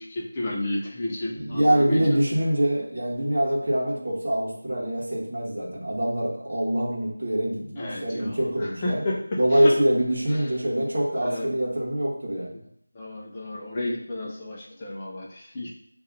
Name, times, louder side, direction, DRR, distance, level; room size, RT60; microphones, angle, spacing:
voice 1, 0.0-2.2 7.7-9.8 10.3-10.5 11.1-11.5 12.5-12.6 12.9-15.7, left 1 dB, 20° left, -3 dB, 0.6 m, -32 dB
voice 2, 1.5-9.0 9.3-12.6, right 1 dB, 50° right, -5 dB, 1.1 m, -24 dB
6.3 x 2.6 x 2.7 m, 0.69 s
figure-of-eight pair, 175°, 0 cm